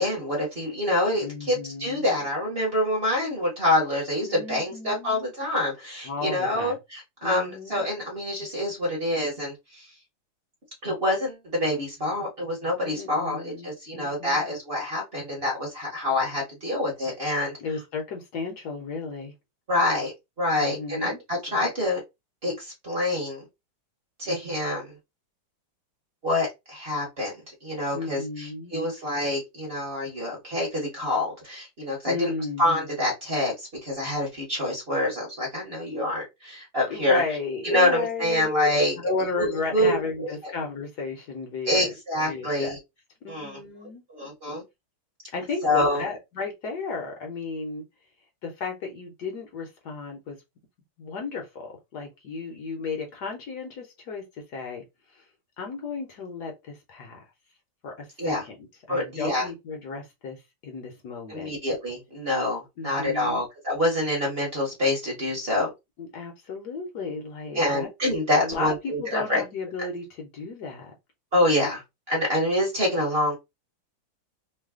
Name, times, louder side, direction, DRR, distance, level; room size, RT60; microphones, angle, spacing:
voice 1, 0.0-9.9 10.8-17.6 19.7-20.1 20.4-22.0 22.4-23.4 24.2-24.9 26.2-27.3 27.6-32.3 32.6-37.2 37.6-39.0 39.4-40.3 41.7-42.8 43.3-43.6 44.1-44.6 45.6-46.1 58.2-58.4 58.9-59.5 61.3-65.7 67.5-69.4 71.3-71.8 72.1-73.3, left 1 dB, 35° right, 1.1 m, -26 dB
voice 2, 1.2-2.2 4.2-5.2 6.0-6.8 7.2-7.9 12.8-14.5 17.6-19.3 20.6-21.2 27.9-28.7 32.1-32.6 36.9-38.5 39.0-41.9 42.2-42.7 43.2-44.0 45.3-47.8 48.4-50.4 51.0-54.8 55.1-55.2 55.6-57.2 57.8-58.6 58.9-61.6 62.8-63.4 66.0-67.9 68.4-70.9, left 4 dB, 65° left, 1.3 m, -34 dB
3.2 x 2.3 x 3.5 m
omnidirectional pair, 2.1 m